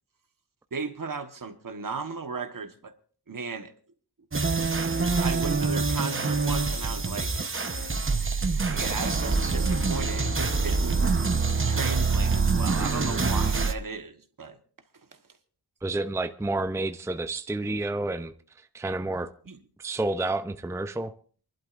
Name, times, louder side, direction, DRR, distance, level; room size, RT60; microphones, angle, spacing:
voice 1, 0.7-3.0 3.3-3.7 4.8-7.3 8.7-11.0 11.6-14.6 19.5-19.6, right 4 dB, 55° right, 1.3 m, -36 dB
sound 1, 4.3-13.7, right 4 dB, 35° right, 1.0 m, -25 dB
voice 2, 15.8-19.3 19.8-21.1, right 2 dB, 5° right, 0.5 m, -30 dB
28.0 x 11.5 x 2.5 m
wide cardioid pair, 100°, 38 cm